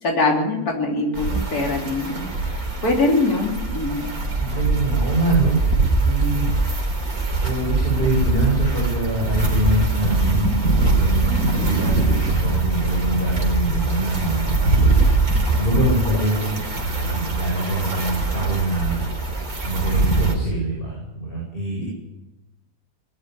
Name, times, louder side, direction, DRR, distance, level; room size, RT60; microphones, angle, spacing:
voice 1, 0.0-4.1, left 2 dB, 65° left, 0 dB, 3.7 m, -23 dB
sound 1, 1.1-20.3, right 3 dB, 65° right, 4.2 m, -22 dB
voice 2, 4.4-5.6 6.0-6.5 7.4-14.9 15.6-19.0 19.6-21.8, right 2 dB, 35° left, -3 dB, 8.2 m, -24 dB
21.0 x 13.0 x 10.0 m, 0.99 s
omnidirectional pair, 1.7 m